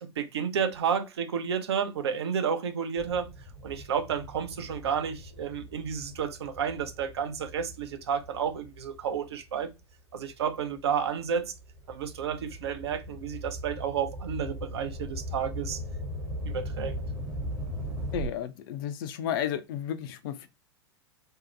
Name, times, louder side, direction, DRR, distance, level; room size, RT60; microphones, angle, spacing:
voice 1, 0.0-3.3 3.6-9.7 10.1-11.5 11.9-15.8 16.4-16.9, right 7 dB, 65° right, 0.5 m, -31 dB
sound 1, 3.0-9.7 10.3-18.3, equal, 30° right, 0.8 m, -39 dB
voice 2, 18.1-20.5, left 10 dB, 50° left, 0.4 m, -32 dB
2.7 x 2.1 x 2.4 m
figure-of-eight pair, 90°, 15 cm